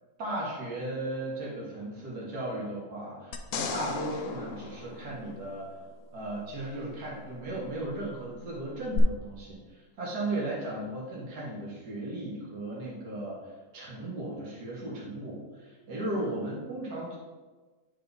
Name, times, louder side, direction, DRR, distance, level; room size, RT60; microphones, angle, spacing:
voice 1, 0.2-5.7 6.1-17.2, right 1 dB, 85° right, -5 dB, 2.1 m, -36 dB
sound 1, 3.3-5.8 8.9-9.0, left 6 dB, 65° left, 0.9 m, -36 dB
9.7 x 4.0 x 3.5 m, 1.3 s
omnidirectional pair, 1.7 m